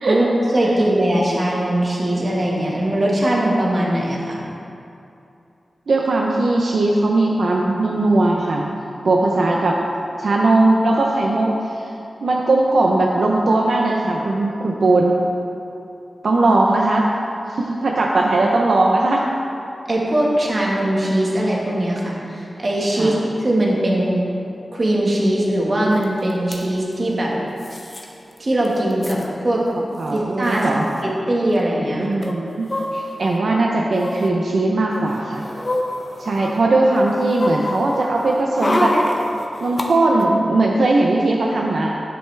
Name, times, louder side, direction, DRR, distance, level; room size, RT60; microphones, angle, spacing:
voice 1, 0.1-4.4 19.9-23.1 23.4-24.2 24.7-27.3 28.4-29.6 30.1-30.7 31.0-32.2, right 1 dB, 40° right, -3 dB, 1.5 m, -20 dB
voice 2, 5.9-8.7 9.0-9.8 10.2-11.9 12.2-15.1 16.2-17.1 17.5-19.2 23.0-23.1 30.0-30.9 32.0-35.4 36.2-38.9 39.6-42.0, right 2 dB, 70° right, -1 dB, 0.6 m, -19 dB
sound 1, 26.0-26.1 26.3-26.6 27.6-28.0 28.4-28.5 28.7-29.3 30.1-30.2 30.4-30.6 32.2-33.4 33.9-34.3 34.9-36.6 36.9-39.9 40.2-40.3, left 1 dB, 30° left, 0.8 m, -26 dB
9.9 x 7.8 x 3.3 m, 2.7 s
wide cardioid pair, 125°, 0 cm